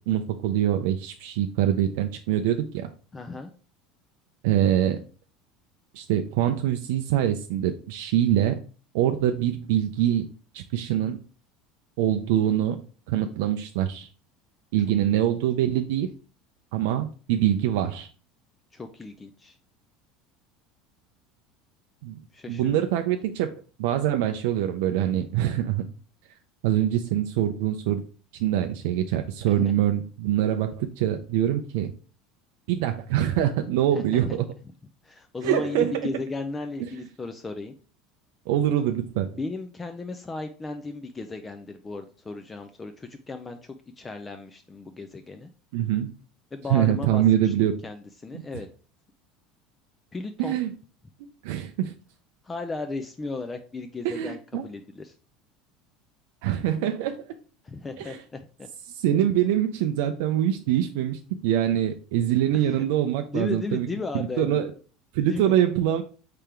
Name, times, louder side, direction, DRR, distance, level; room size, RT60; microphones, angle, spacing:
voice 1, 0.1-2.9 4.4-5.0 5.9-8.6 8.9-10.2 10.5-11.2 12.0-12.8 13.1-14.1 14.7-16.1 16.7-18.1 22.0-22.2 22.5-23.5 23.8-25.8 26.6-28.0 28.4-31.9 32.7-34.5 35.4-36.1 37.0-37.1 38.5-39.3 45.7-46.1 46.7-47.7 50.4-50.7 51.2-51.9 54.0-54.6 56.4-57.3 58.0-58.2 58.9-63.9 64.1-64.7 65.1-66.0, right 11 dB, 80° right, 7 dB, 0.4 m, -24 dB
voice 2, 3.1-3.5 18.7-19.6 22.3-22.7 29.6-29.7 33.9-34.4 35.0-37.7 39.4-45.5 46.5-48.7 50.1-50.6 52.4-55.1 57.6-58.7 62.5-62.8 63.3-64.6 65.3-65.6, left 3 dB, 20° left, 7 dB, 0.4 m, -35 dB
3.7 x 3.3 x 4.4 m, 0.38 s
supercardioid pair, 110°, 0 cm